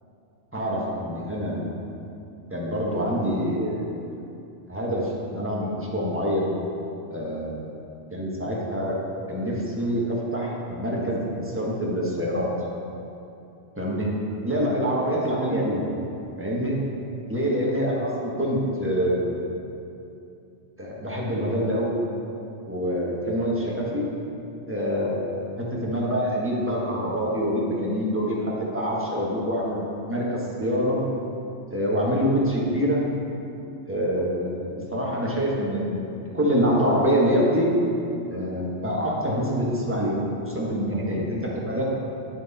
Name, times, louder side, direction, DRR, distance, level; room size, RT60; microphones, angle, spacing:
voice 1, 0.5-1.6 2.5-3.9 4.7-6.5 7.1-7.7 8.1-9.0 9.3-12.5 13.8-14.2 14.4-15.8 16.4-16.8 17.3-19.4 20.8-21.9 22.7-24.0 24.7-31.0 31.7-33.0 33.9-36.0 36.3-37.7 38.3-40.2 40.5-41.9, equal, 10° right, -5 dB, 1.3 m, -25 dB
9.5 x 6.2 x 4.1 m, 2.7 s
omnidirectional pair, 1.2 m